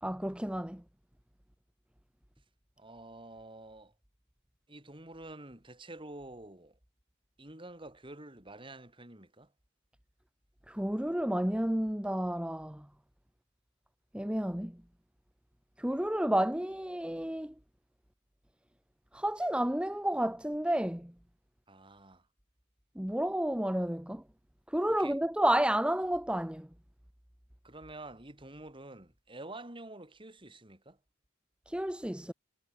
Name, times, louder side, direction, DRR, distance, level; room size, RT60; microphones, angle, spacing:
voice 1, 0.0-0.8 10.7-12.9 14.1-14.8 15.8-17.5 19.1-21.1 23.0-24.2 24.7-26.7 31.7-32.3, right 1 dB, 5° right, 0.9 m, -31 dB
voice 2, 2.8-3.9 4.7-6.8 7.4-9.5 21.7-22.3 24.9-25.2 27.6-31.0, right 2 dB, 25° right, 3.4 m, -48 dB
head